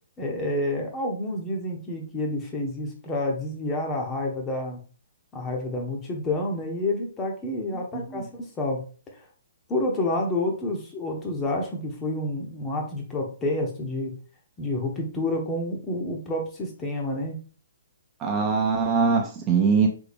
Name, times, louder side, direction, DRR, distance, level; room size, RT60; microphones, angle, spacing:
voice 1, 0.2-4.8 5.3-8.9 9.7-14.2 14.6-17.4, left 1 dB, 15° left, 1 dB, 0.9 m, -29 dB
voice 2, 7.7-8.3 18.2-19.9, right 5 dB, 20° right, 1 dB, 0.7 m, -23 dB
3.8 x 3.5 x 3.4 m, 0.38 s
figure-of-eight pair, 125°, 0 cm